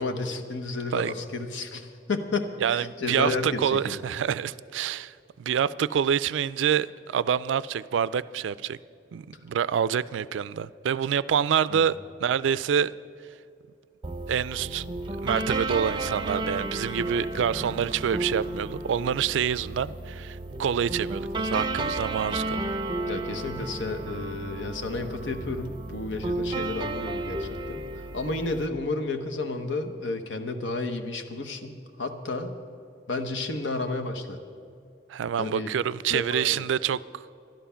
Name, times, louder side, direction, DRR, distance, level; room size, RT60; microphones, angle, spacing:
voice 1, 0.0-4.0 11.7-11.9 17.3-17.5 23.1-32.5 33.1-34.4 35.4-35.7 36.1-36.6, left 3 dB, 85° left, 1.0 m, -32 dB
voice 2, 2.6-8.8 9.1-11.9 12.2-12.9 14.3-14.8 15.2-22.7 35.1-37.2, right 8 dB, 80° right, 0.3 m, -27 dB
sound 1, 14.0-28.7, right 2 dB, 25° right, 0.6 m, -33 dB
12.5 x 12.0 x 5.7 m
head